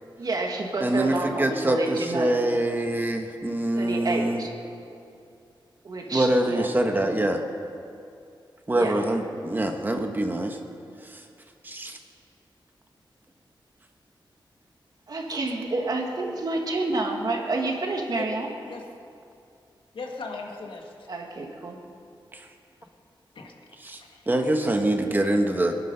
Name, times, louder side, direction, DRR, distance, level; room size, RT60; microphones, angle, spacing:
voice 1, 0.2-2.4 3.8-4.5 5.8-7.3 8.7-9.0 15.1-18.5 21.1-21.8, right 2 dB, 50° right, 1 dB, 2.0 m, -29 dB
voice 2, 0.8-4.4 6.1-7.4 8.7-10.6 11.0-11.2 11.6-12.0 22.3-22.5 23.8-24.0 24.3-25.7, right 1 dB, 20° right, 4 dB, 1.2 m, -25 dB
voice 3, 19.9-21.1 23.3-23.6 24.0-24.3, left 3 dB, 75° left, 1 dB, 1.9 m, -38 dB
22.0 x 11.5 x 5.6 m, 2.5 s
wide cardioid pair, 155°, 9 cm